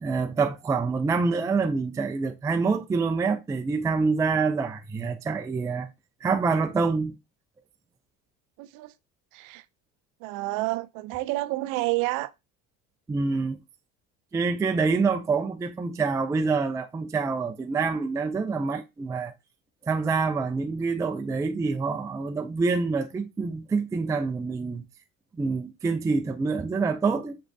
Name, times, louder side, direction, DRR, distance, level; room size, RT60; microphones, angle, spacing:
voice 1, 0.0-5.9 6.2-7.1 13.1-13.6 14.3-19.3 19.8-24.8 25.3-27.4, right 4 dB, 10° right, 0.3 m, -26 dB
voice 2, 8.6-8.9 9.3-9.6 10.2-12.3, right 20 dB, 70° right, 0.5 m, -29 dB
6.3 x 3.1 x 2.6 m
supercardioid pair, 115°, 33 cm